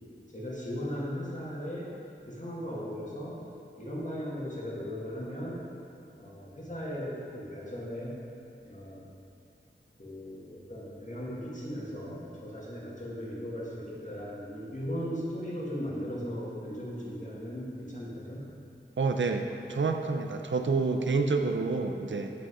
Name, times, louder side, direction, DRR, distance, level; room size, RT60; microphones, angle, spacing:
voice 1, 0.3-1.9 2.3-3.4 3.8-5.7 6.2-8.2 8.6-9.0 10.0-18.5, equal, 40° left, -6 dB, 1.6 m, -37 dB
voice 2, 19.0-22.3, right 4 dB, 75° right, 5 dB, 0.5 m, -28 dB
7.8 x 3.9 x 4.8 m, 2.7 s
wide cardioid pair, 50°, 20 cm